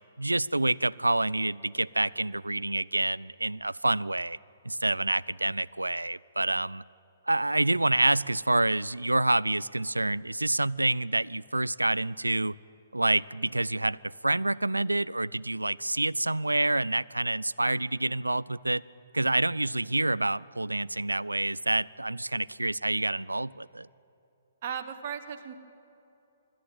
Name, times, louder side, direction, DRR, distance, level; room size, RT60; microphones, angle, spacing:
voice 1, 0.2-4.4 4.6-6.8 7.3-12.6 12.9-18.8 19.1-23.9, right 2 dB, 85° right, 22 dB, 0.4 m, -27 dB
voice 2, 24.6-25.5, right 8 dB, 45° right, 6 dB, 1.4 m, -36 dB
25.5 x 13.0 x 9.3 m, 2.9 s
figure-of-eight pair, 125°, 0 cm